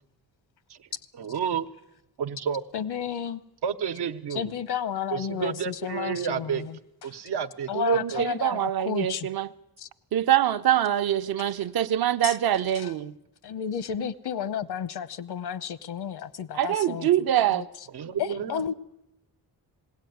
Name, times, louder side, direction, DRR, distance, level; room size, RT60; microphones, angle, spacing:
voice 1, 1.2-1.7 2.2-2.6 3.6-4.5 5.1-6.7 7.0-8.2 17.9-18.6, right 7 dB, 90° right, 7 dB, 1.1 m, -31 dB
voice 2, 2.7-3.4 4.3-6.8 7.7-9.3 9.8-9.9 12.2-12.3 12.7-12.9 13.4-17.1 17.5-17.6 18.2-18.7, left 8 dB, 75° left, 15 dB, 0.9 m, -32 dB
voice 3, 7.7-9.5 10.1-13.1 14.0-14.1 16.5-17.7, right 11 dB, 65° right, 10 dB, 0.7 m, -24 dB
20.5 x 17.0 x 9.4 m, 0.91 s
wide cardioid pair, 135°, 39 cm